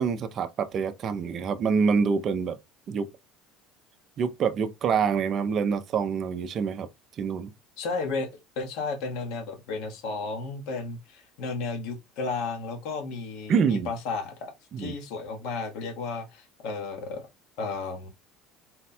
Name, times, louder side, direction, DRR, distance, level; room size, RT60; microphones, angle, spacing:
voice 1, 0.0-2.6 2.9-3.1 4.2-6.9 7.2-7.5 13.5-13.9 14.7-15.0, right 6 dB, 30° right, 0.5 m, -26 dB
voice 2, 7.8-14.5 14.8-17.3 17.6-18.1, left 4 dB, 60° left, 1.2 m, -33 dB
4.2 x 2.2 x 4.1 m
cardioid pair, 175°, 0 cm